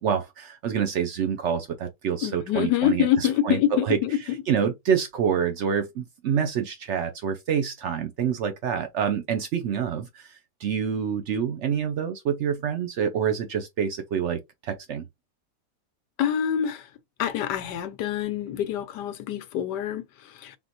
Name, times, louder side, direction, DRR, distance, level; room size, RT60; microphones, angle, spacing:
voice 1, 0.0-4.0 4.5-15.1, right 7 dB, 80° right, 0.6 m, -27 dB
voice 2, 2.2-4.4 16.2-16.9 17.2-20.6, left 10 dB, 75° left, 1.2 m, -26 dB
3.7 x 3.6 x 2.8 m
omnidirectional pair, 1.9 m